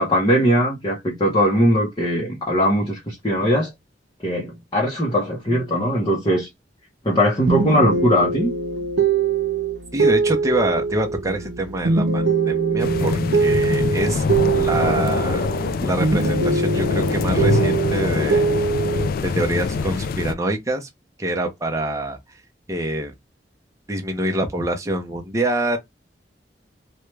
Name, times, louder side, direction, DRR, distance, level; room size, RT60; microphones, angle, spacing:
voice 1, 0.0-3.7 4.2-6.5 7.0-8.5, equal, 25° left, 0.7 m, -20 dB
sound 1, 7.4-15.7 16.0-19.1, right 4 dB, 70° right, 0.7 m, -22 dB
voice 2, 9.9-14.3 14.5-15.5 15.8-18.4 19.2-20.9 21.2-22.2 22.7-23.1 23.9-25.8, right 1 dB, 20° right, 0.7 m, -25 dB
sound 2, 12.8-20.3, left 4 dB, 55° left, 0.3 m, -24 dB
3.1 x 2.3 x 3.1 m
head